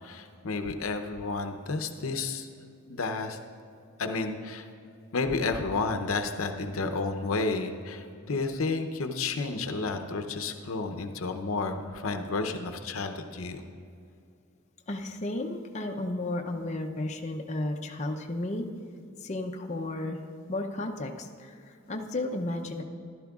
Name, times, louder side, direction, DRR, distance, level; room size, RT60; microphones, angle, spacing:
voice 1, 0.0-2.5 2.9-3.4 4.0-4.7 5.1-13.6, left 3 dB, 80° left, 7 dB, 0.7 m, -31 dB
voice 2, 14.9-18.7 19.2-20.2 20.5-22.8, left 2 dB, 35° left, 2 dB, 0.6 m, -33 dB
14.0 x 11.5 x 2.4 m, 2.5 s
head